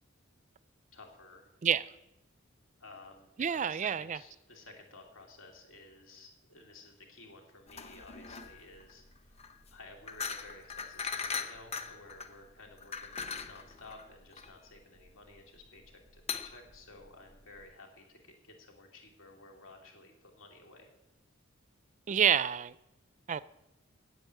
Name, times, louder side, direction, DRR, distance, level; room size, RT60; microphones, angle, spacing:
voice 1, 0.9-1.5 2.8-9.4 9.7-20.9, left 2 dB, 80° left, 2.5 m, -54 dB
voice 2, 3.4-4.2 22.1-22.8 23.3-23.4, right 8 dB, 35° right, 0.4 m, -28 dB
sound 1, 7.7-17.7, left 5 dB, 30° left, 0.8 m, -41 dB
9.1 x 8.0 x 9.2 m
head